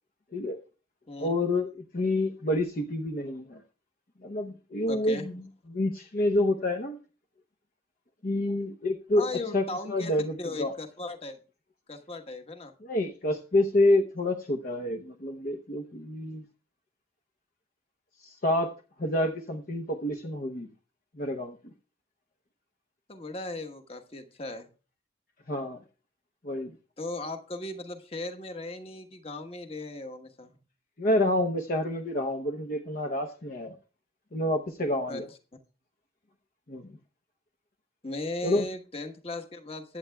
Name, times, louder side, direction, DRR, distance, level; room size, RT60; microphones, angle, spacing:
voice 1, 1.2-1.7 1.9-3.6 4.2-5.4 5.7-7.0 8.2-9.3 9.5-10.7 12.8-16.4 18.2-18.7 19.0-20.7 21.2-21.6 25.5-25.8 26.4-26.7 31.0-33.7 34.3-35.3 36.7-36.9 38.4-38.6, left 1 dB, 50° left, 5 dB, 0.8 m, -28 dB
voice 2, 4.9-5.3 9.2-11.4 11.9-12.7 23.1-24.7 27.0-30.6 35.1-35.2 38.0-40.0, left 2 dB, 35° left, 7 dB, 1.2 m, -37 dB
22.0 x 8.7 x 2.3 m, 0.35 s
head